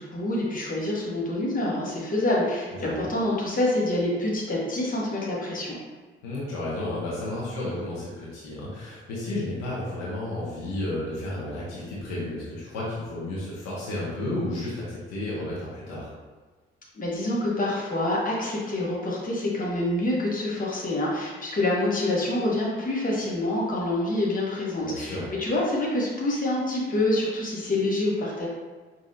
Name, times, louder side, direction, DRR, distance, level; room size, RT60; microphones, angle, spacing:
voice 1, 0.0-5.8 16.9-28.5, left 1 dB, 30° left, -5 dB, 1.3 m, -26 dB
voice 2, 2.7-3.0 6.2-16.1 24.8-25.3, left 1 dB, 65° left, -7 dB, 1.0 m, -32 dB
5.2 x 2.6 x 2.7 m, 1.3 s
figure-of-eight pair, 45°, 29 cm